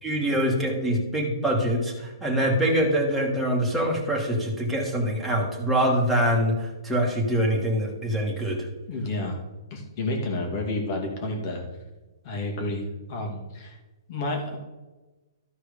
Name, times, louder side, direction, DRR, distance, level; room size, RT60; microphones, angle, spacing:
voice 1, 0.0-8.7, equal, ahead, -4 dB, 2.0 m, -24 dB
voice 2, 8.9-9.4 9.7-11.6 12.2-13.8 14.1-14.6, left 2 dB, 45° left, 2 dB, 2.6 m, -30 dB
13.5 x 4.6 x 5.2 m, 1.1 s
hypercardioid pair, 145°, 2 cm